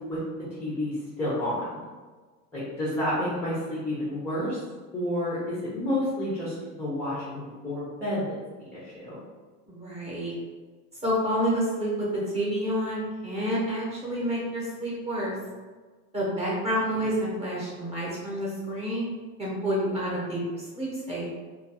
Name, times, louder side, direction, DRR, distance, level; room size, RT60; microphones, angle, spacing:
voice 1, 0.0-1.8 2.5-4.6 4.9-9.2, left 1 dB, 5° left, -10 dB, 0.3 m, -30 dB
voice 2, 9.7-10.3 11.0-12.1 12.3-15.4 16.1-19.1 19.4-21.3, equal, 15° right, -6 dB, 0.7 m, -29 dB
2.2 x 2.2 x 2.7 m, 1.4 s
supercardioid pair, 140°, 44 cm